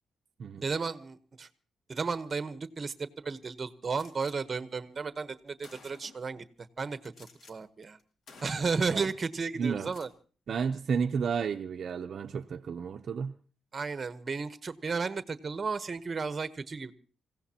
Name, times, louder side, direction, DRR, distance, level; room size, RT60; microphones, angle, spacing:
voice 1, 0.6-1.5 1.9-8.0 8.4-10.1 13.7-16.9, right 4 dB, 25° right, 12 dB, 1.0 m, -34 dB
Gunshot gunfire, 3.9-4.4 5.2-5.3 5.6-6.3 7.0-7.5 7.8-8.0 8.3-8.9 9.8-10.1, left 4 dB, 55° left, 2.4 m, -54 dB
voice 2, 9.6-9.9 10.5-13.3, right 6 dB, 45° right, 5 dB, 0.6 m, -32 dB
26.0 x 16.5 x 2.9 m, 0.39 s
cardioid pair, 150°, 0 cm